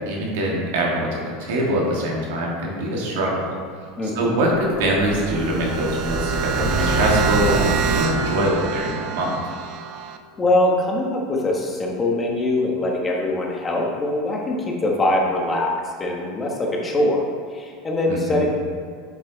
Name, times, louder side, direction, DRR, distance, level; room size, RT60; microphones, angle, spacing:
voice 1, 0.1-3.5 4.0-9.4 18.1-18.4, right 1 dB, 80° right, -2 dB, 1.8 m, -23 dB
voice 2, 4.0-4.4 10.3-15.7 16.0-17.2 17.5-18.5, left 1 dB, 25° left, -1 dB, 1.4 m, -22 dB
Explosion, 4.1-8.8, equal, 20° right, 1.5 m, -28 dB
sound 1, 5.1-10.2, right 8 dB, 60° right, 0.5 m, -26 dB
7.4 x 4.6 x 4.0 m, 2.1 s
supercardioid pair, 110°, 0 cm